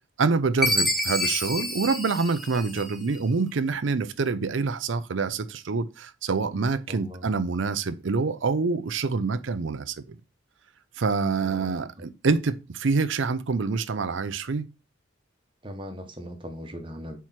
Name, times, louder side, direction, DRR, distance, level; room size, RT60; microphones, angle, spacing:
voice 1, 0.2-10.2 11.0-14.6, right 4 dB, 70° right, 0.5 m, -26 dB
Chime, 0.6-3.2, left 1 dB, ahead, 0.7 m, -27 dB
voice 2, 6.9-7.3 11.4-12.0 15.6-17.2, equal, 25° right, 1.1 m, -40 dB
4.6 x 4.5 x 5.7 m
head